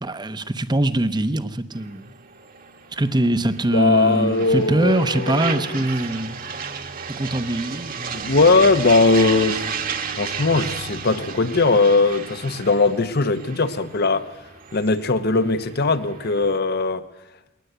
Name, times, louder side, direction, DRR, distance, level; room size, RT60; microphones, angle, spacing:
voice 1, 0.0-2.1 2.9-6.4 7.2-8.3, right 1 dB, 20° right, 0.9 m, -23 dB
sound 1, 1.7-16.6, right 6 dB, 45° right, 1.4 m, -33 dB
voice 2, 3.7-5.8 8.1-9.7 10.2-14.3 14.7-17.0, left 3 dB, 55° left, 1.0 m, -19 dB
21.0 x 19.5 x 8.1 m
head